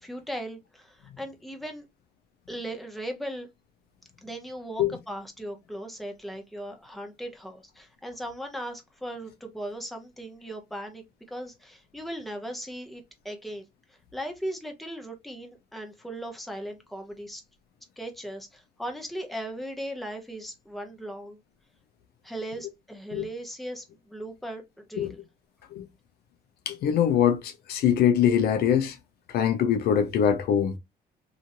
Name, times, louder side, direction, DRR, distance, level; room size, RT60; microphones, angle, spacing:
voice 1, 0.0-1.9 2.5-3.5 4.2-17.4 18.0-21.4 22.2-25.2, right 1 dB, ahead, 0.7 m, -38 dB
voice 2, 26.7-29.0 29.3-30.7, left 9 dB, 65° left, 0.7 m, -23 dB
2.9 x 2.6 x 2.5 m
cardioid pair, 110°, 17 cm